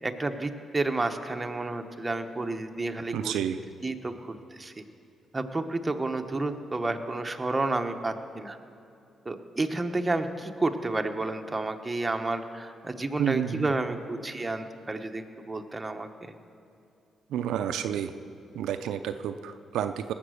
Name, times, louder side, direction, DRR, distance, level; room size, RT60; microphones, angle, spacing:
voice 1, 0.0-3.3 3.8-4.8 5.3-8.6 9.2-16.1, right 2 dB, 20° right, 6 dB, 1.0 m, -31 dB
voice 2, 3.1-3.6 13.2-13.7 17.3-18.1 18.5-20.1, right 9 dB, 85° right, 9 dB, 0.5 m, -30 dB
18.5 x 7.4 x 6.4 m, 2.6 s
cardioid pair, 80°, 0 cm